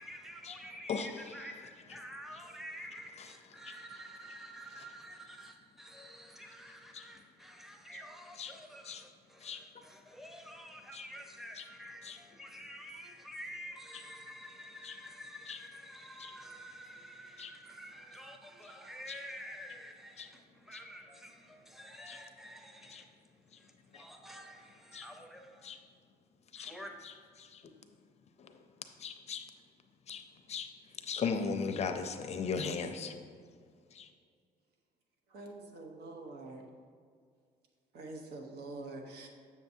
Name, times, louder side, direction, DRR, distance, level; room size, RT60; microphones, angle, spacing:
voice 1, 0.0-23.1 23.6-25.7 26.6-26.9, equal, ahead, 3 dB, 0.7 m, -49 dB
voice 2, 0.9-1.2 3.2-3.3 3.6-4.0 4.8-4.9 6.9-7.1 8.4-8.5 8.8-9.0 9.4-9.6 10.9-11.1 11.6-11.7 12.0-12.2 14.8-15.0 15.5-15.6 16.2-16.3 17.4-17.5 19.1-19.2 20.2-20.3 20.7-20.8 22.1-22.2 22.9-23.0 23.9-24.0 24.9-25.1 25.6-25.8 26.5-26.7 27.0-27.1 27.4-27.6 28.4-28.5 29.0-29.5 30.1-30.2 30.5-30.7 31.0-33.1 33.9-34.1, left 5 dB, 40° left, 7 dB, 0.5 m, -38 dB
voice 3, 35.3-36.6 37.9-39.3, right 2 dB, 70° right, 3 dB, 1.0 m, -45 dB
7.3 x 6.8 x 2.7 m, 2.1 s
cardioid pair, 110°, 17 cm